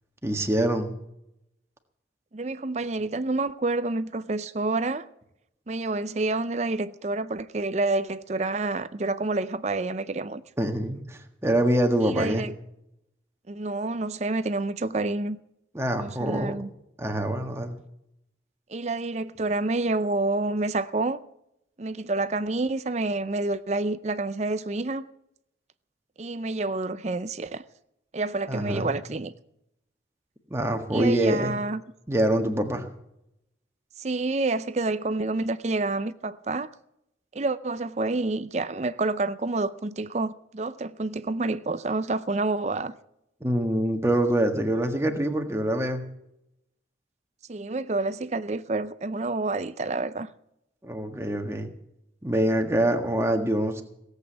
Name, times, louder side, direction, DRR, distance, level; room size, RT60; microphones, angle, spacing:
voice 1, 0.2-0.9 10.6-12.4 15.7-16.5 17.0-17.8 28.5-28.9 30.5-31.5 32.1-32.9 43.4-46.0 50.8-51.7 52.2-53.8, right 1 dB, 15° right, 1.6 m, -25 dB
voice 2, 2.3-5.0 5.7-10.4 12.0-12.5 13.5-15.4 16.0-16.7 18.7-21.2 21.8-25.1 26.2-27.6 28.1-29.3 30.9-31.8 34.0-36.7 37.3-42.9 47.5-50.3, right 2 dB, 35° right, 0.5 m, -28 dB
17.5 x 8.2 x 8.6 m
head